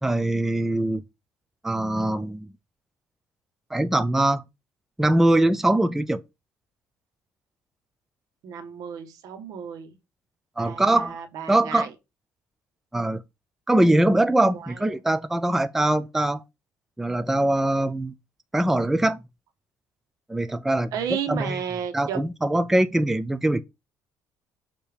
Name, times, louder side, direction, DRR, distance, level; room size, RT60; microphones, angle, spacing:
voice 1, 0.0-1.0 1.6-2.5 3.7-4.4 5.0-6.2 10.6-11.2 11.5-11.9 12.9-13.2 13.7-16.4 17.0-18.1 18.5-19.2 20.3-20.9 21.3-21.6 21.9-23.6, right 1 dB, 5° right, 0.4 m, -22 dB
voice 2, 8.4-9.9 10.6-11.9 14.5-14.8 20.9-22.2, right 8 dB, 70° right, 1.4 m, -33 dB
6.9 x 2.9 x 5.1 m
cardioid pair, 100°, 6 cm